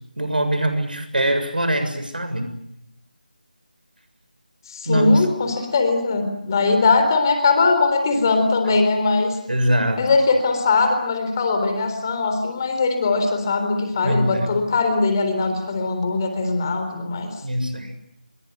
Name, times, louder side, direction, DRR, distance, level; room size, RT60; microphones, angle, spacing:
voice 1, 0.2-2.5 4.9-5.3 9.5-10.0 14.0-14.6 17.4-17.9, right 1 dB, 70° right, 8 dB, 7.3 m, -22 dB
voice 2, 4.7-9.4 10.0-17.3, left 3 dB, 25° left, 6 dB, 3.9 m, -20 dB
29.0 x 22.0 x 8.0 m, 0.77 s
figure-of-eight pair, 160°, 5 cm